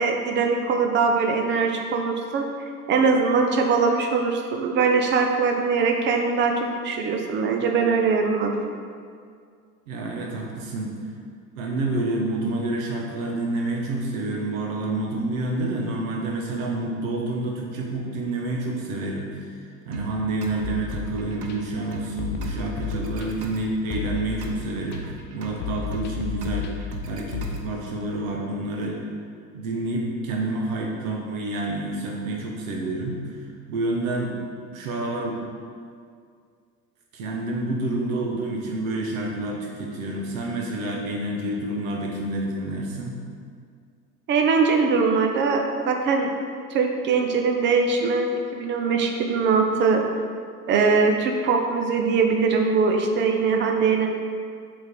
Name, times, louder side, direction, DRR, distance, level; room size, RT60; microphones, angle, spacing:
voice 1, 0.0-2.4 2.9-8.7 44.3-46.3 46.7-50.0 50.7-54.1, right 4 dB, 25° right, 3 dB, 0.7 m, -22 dB
voice 2, 9.9-10.9 11.5-19.3 19.8-25.0 25.3-26.7 27.0-29.0 29.5-33.2 33.7-34.4 34.7-35.4 37.1-43.2, right 2 dB, 55° right, 0 dB, 1.4 m, -28 dB
sound 1, 19.9-27.9, right 3 dB, 75° right, 0.9 m, -39 dB
sound 2, 20.6-21.5 22.2-23.5 23.9-25.0 25.6-27.5, left 9 dB, 25° left, 0.6 m, -33 dB
7.0 x 4.4 x 4.7 m, 2.2 s
figure-of-eight pair, 80°, 48 cm